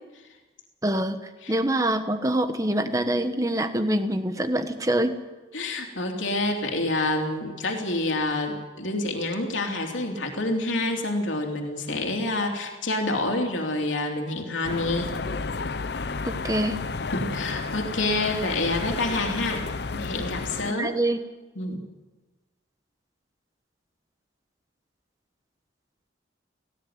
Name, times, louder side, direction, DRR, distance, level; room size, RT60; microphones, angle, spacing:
voice 1, 0.8-5.2 16.2-16.8 20.6-21.2, right 1 dB, 15° right, 8 dB, 1.2 m, -25 dB
voice 2, 5.5-15.1 17.1-19.6 19.9-20.9 21.5-21.8, left 2 dB, 80° left, 2 dB, 3.1 m, -27 dB
sound 1, 14.6-20.7, left 4 dB, 55° left, 0.6 m, -32 dB
18.0 x 16.5 x 9.4 m, 1.2 s
head